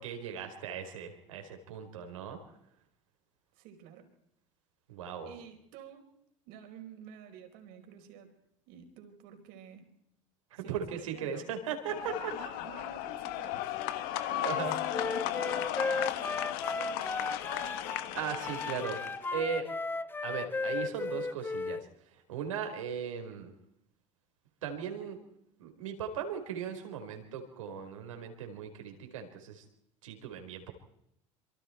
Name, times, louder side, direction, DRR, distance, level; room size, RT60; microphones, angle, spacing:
voice 1, 0.0-2.6 4.9-5.3 10.5-12.4 13.9-14.8 18.1-19.0 19.3-19.7 20.2-23.5 24.6-25.2 25.6-29.6 30.0-30.7, right 7 dB, 90° right, 5 dB, 4.7 m, -38 dB
voice 2, 3.5-4.1 5.2-6.0 6.5-8.3 8.7-9.9 10.6-11.5 12.3-13.8 14.3-17.6, right 8 dB, 70° right, 5 dB, 4.8 m, -51 dB
sound 1, 11.9-19.3, left 13 dB, 65° left, 1.5 m, -35 dB
Wind instrument woodwind instrument, 14.9-18.1 18.4-21.8, left 3 dB, 15° left, 0.7 m, -35 dB
26.5 x 24.5 x 4.6 m, 0.77 s
hypercardioid pair, 85°, 16 cm